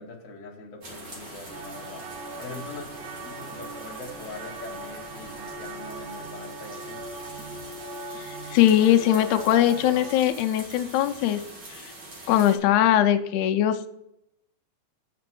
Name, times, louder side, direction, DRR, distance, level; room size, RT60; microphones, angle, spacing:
voice 1, 0.0-2.0 2.4-7.0, left 3 dB, 40° left, -1 dB, 1.2 m, -42 dB
sound 1, 0.8-12.6, right 2 dB, 40° right, 2.1 m, -43 dB
sound 2, 1.5-10.2, right 2 dB, 85° right, 2.4 m, -40 dB
voice 2, 8.2-11.4 11.7-11.9 12.3-13.9, left 11 dB, 85° left, 7 dB, 2.0 m, -21 dB
7.4 x 6.0 x 6.1 m, 0.82 s
omnidirectional pair, 3.4 m